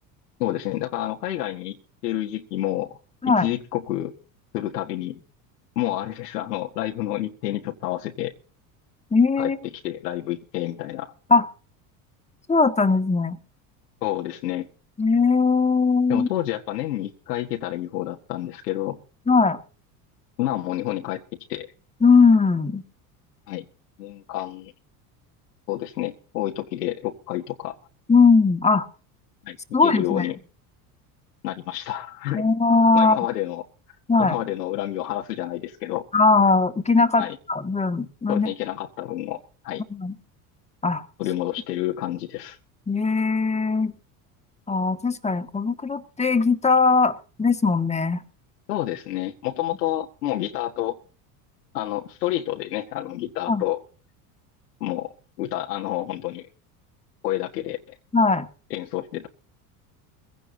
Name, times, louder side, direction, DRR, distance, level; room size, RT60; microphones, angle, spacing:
voice 1, 0.4-1.8 2.0-3.0 3.2-4.1 4.5-5.2 5.7-8.3 9.4-11.1 14.0-14.7 16.1-19.0 20.4-21.2 21.5-21.7 23.5-23.6 24.0-24.7 25.7-27.8 29.4-30.4 31.4-32.4 32.9-33.6 34.2-36.1 37.2-37.4 38.3-39.8 41.2-42.6 48.7-51.0 51.7-53.8 54.8-55.1 55.4-56.5 57.2-57.9 58.7-59.3, left 14 dB, 90° left, 1 dB, 1.6 m, -29 dB
voice 2, 9.1-9.6 11.3-11.5 12.5-13.4 15.0-16.3 19.3-19.6 22.0-22.8 28.1-28.9 29.7-30.3 32.3-33.2 34.1-34.4 36.1-38.5 39.9-40.1 40.8-41.1 42.9-43.9 44.7-48.2 53.5-53.6 58.1-58.5, left 4 dB, 15° left, 9 dB, 1.8 m, -19 dB
22.5 x 16.5 x 2.7 m, 0.37 s
hypercardioid pair, 90°, 46 cm